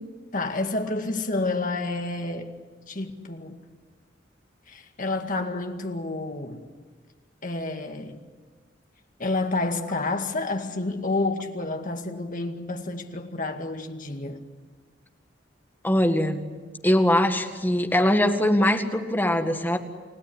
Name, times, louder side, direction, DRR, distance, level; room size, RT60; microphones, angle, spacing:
voice 1, 0.3-2.6 2.9-3.6 4.7-6.6 7.4-8.2 9.2-14.4, left 2 dB, 45° left, 2.1 m, -29 dB
voice 2, 15.8-16.4 16.8-19.8, left 1 dB, 10° left, 1.9 m, -22 dB
30.0 x 17.0 x 10.0 m
head